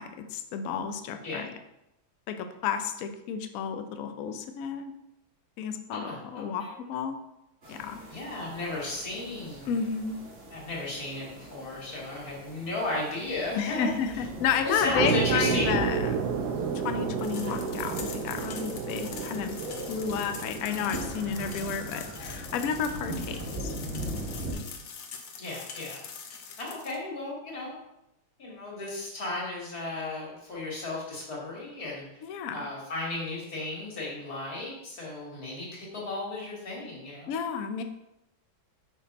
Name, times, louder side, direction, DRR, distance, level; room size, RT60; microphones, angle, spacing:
voice 1, 0.0-1.5 2.3-4.9 5.6-7.2 7.7-8.0 9.6-10.2 13.5-16.3 16.8-19.6 19.9-23.7 32.2-32.6 37.3-37.8, left 7 dB, 90° left, 8 dB, 0.7 m, -31 dB
voice 2, 5.9-6.7 8.1-9.8 10.5-13.9 14.6-15.8 25.4-26.0 26.6-27.8 28.4-32.0 32.5-37.3, left 2 dB, 45° left, -3 dB, 2.5 m, -34 dB
sound 1, 7.6-24.5, right 1 dB, 40° right, 1.4 m, -40 dB
sound 2, 15.0-21.3, right 7 dB, 70° right, 1.0 m, -31 dB
sound 3, 17.2-27.0, left 6 dB, 65° left, 1.5 m, -44 dB
6.0 x 5.8 x 4.1 m, 0.87 s
omnidirectional pair, 2.3 m